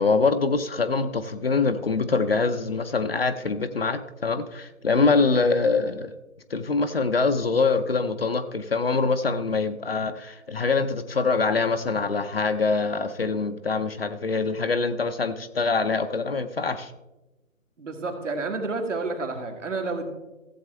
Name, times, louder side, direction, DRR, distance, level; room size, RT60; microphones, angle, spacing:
voice 1, 0.0-6.1 6.5-16.9, left 4 dB, 45° left, 10 dB, 0.6 m, -24 dB
voice 2, 17.8-20.1, right 3 dB, 60° right, 4 dB, 2.0 m, -30 dB
15.0 x 7.9 x 3.3 m, 1.0 s
figure-of-eight pair, 150°, 42 cm